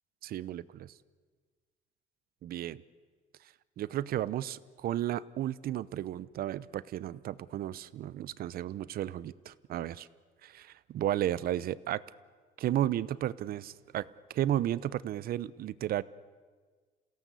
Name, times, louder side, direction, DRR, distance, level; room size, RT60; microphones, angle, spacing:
voice 1, 0.2-0.9 2.4-2.8 3.8-10.1 10.4-12.0 12.6-16.0, right 12 dB, 60° right, 19 dB, 0.8 m, -33 dB
27.5 x 17.0 x 8.3 m, 1.5 s
cardioid pair, 110°, 17 cm